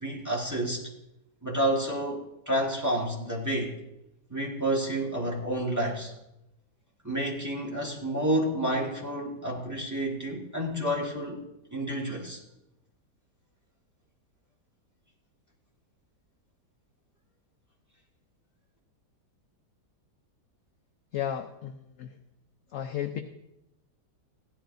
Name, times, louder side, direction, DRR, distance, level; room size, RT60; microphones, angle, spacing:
voice 1, 0.0-0.8 1.4-3.8 4.3-6.1 7.0-11.4 11.7-12.4, right 1 dB, 10° right, -2 dB, 1.4 m, -29 dB
voice 2, 21.1-21.4 22.7-23.2, left 10 dB, 70° left, 7 dB, 0.8 m, -31 dB
15.5 x 11.5 x 2.6 m, 0.88 s
omnidirectional pair, 1.9 m